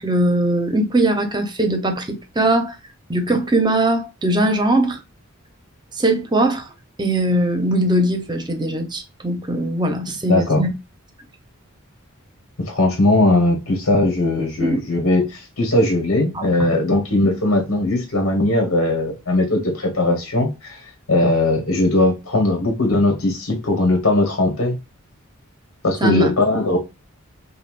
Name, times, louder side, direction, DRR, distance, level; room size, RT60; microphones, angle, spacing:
voice 1, 0.0-2.8 3.1-5.0 6.0-6.7 7.0-10.7 14.6-14.8 16.3-16.7 26.0-26.3, right 1 dB, 20° right, 0.8 m, -20 dB
voice 2, 10.3-10.6 12.7-20.8 21.1-24.8 25.8-26.8, left 2 dB, 80° left, 1.4 m, -19 dB
5.4 x 2.3 x 2.4 m
head